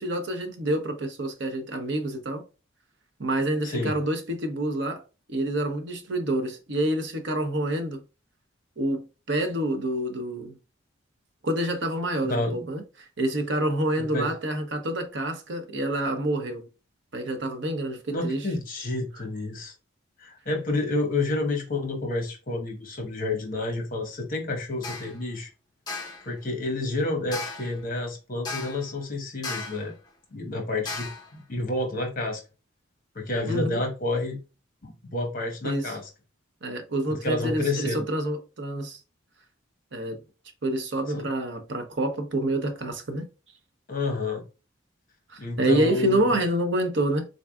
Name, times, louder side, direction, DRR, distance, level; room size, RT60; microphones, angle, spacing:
voice 1, 0.0-2.4 3.2-5.0 5.3-8.0 8.8-10.6 11.4-12.8 13.2-16.7 17.1-18.5 33.5-33.8 35.6-35.9 36.6-39.0 39.9-40.2 40.6-43.2 45.3-47.2, right 1 dB, 60° right, 0.8 m, -27 dB
voice 2, 3.6-4.0 12.2-12.6 14.0-14.3 18.1-19.7 20.2-25.5 26.2-29.9 30.3-32.4 33.1-34.4 34.8-36.1 37.1-38.1 41.1-41.3 43.9-44.4 45.4-46.4, left 2 dB, 45° left, 1.1 m, -29 dB
sound 1, 24.8-25.2 25.9-26.3 27.3-27.8 28.5-28.9 29.4-29.9 30.9-31.3, left 3 dB, 20° left, 0.8 m, -35 dB
3.9 x 3.5 x 2.3 m
head